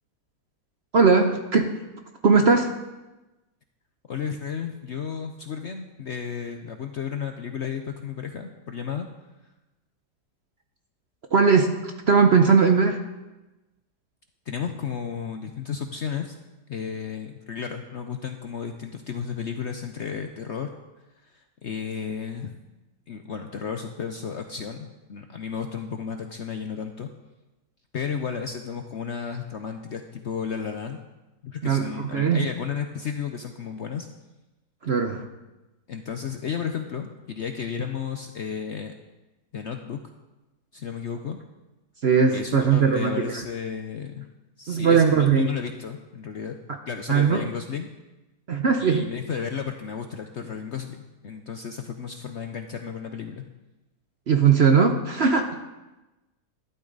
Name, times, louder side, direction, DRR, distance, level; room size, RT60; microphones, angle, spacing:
voice 1, 0.9-1.8 2.2-2.7 11.3-13.0 31.6-32.4 34.8-35.3 42.0-43.4 44.7-45.5 47.1-47.5 48.5-49.1 54.3-55.5, right 5 dB, 50° right, 5 dB, 0.8 m, -19 dB
voice 2, 4.1-9.1 14.5-16.4 16.7-20.7 21.2-22.6 23.1-27.1 27.9-31.0 31.4-34.1 35.9-38.9 39.5-40.0 40.7-41.4 42.3-44.3 44.6-46.6 46.9-47.9 48.8-53.4, left 7 dB, 55° left, 6 dB, 0.8 m, -33 dB
12.0 x 12.0 x 4.0 m, 1.1 s
omnidirectional pair, 1.8 m